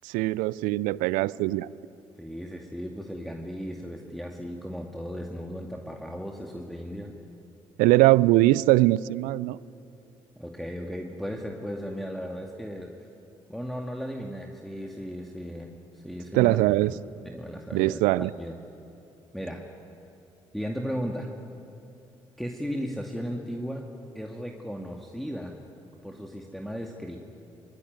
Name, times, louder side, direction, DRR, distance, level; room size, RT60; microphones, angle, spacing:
voice 1, 0.0-1.7 7.8-9.6 16.3-16.9 17.7-18.3, right 18 dB, 70° right, 22 dB, 0.5 m, -21 dB
voice 2, 2.2-7.1 10.4-12.9 13.5-16.9 17.2-18.6 19.3-19.6 20.5-21.3 22.4-23.9 24.1-25.6 26.0-27.2, equal, ahead, 1 dB, 2.2 m, -36 dB
23.5 x 21.5 x 9.5 m, 2.7 s
figure-of-eight pair, 45°, 14 cm